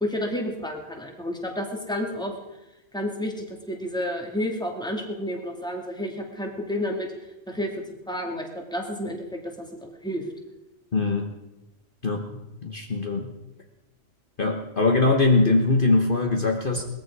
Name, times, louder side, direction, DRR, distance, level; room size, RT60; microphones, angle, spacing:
voice 1, 0.0-2.3 2.9-7.1 7.5-9.7 10.0-10.2, left 1 dB, 5° left, 1 dB, 2.3 m, -30 dB
voice 2, 10.9-11.3 12.0-13.3 14.4-16.8, left 3 dB, 45° left, 2 dB, 1.4 m, -22 dB
20.5 x 14.5 x 4.8 m, 1.0 s
omnidirectional pair, 1.3 m